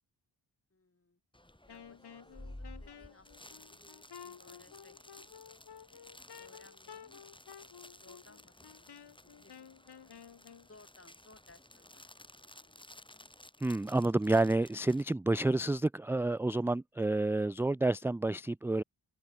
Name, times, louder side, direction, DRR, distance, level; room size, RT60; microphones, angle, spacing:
voice 1, 0.7-1.2 1.7-5.0 5.9-7.3 7.9-8.9 9.2-10.3 10.7-12.8 13.1-13.2, left 3 dB, 30° left, 5.1 m, -63 dB
sound 1, 1.3-15.0, left 1 dB, 10° left, 4.8 m, -54 dB
Wind instrument woodwind instrument, 1.7-10.7, left 7 dB, 65° left, 1.5 m, -53 dB
voice 2, 13.6-18.8, right 2 dB, 5° right, 0.3 m, -29 dB
cardioid pair, 50°, 43 cm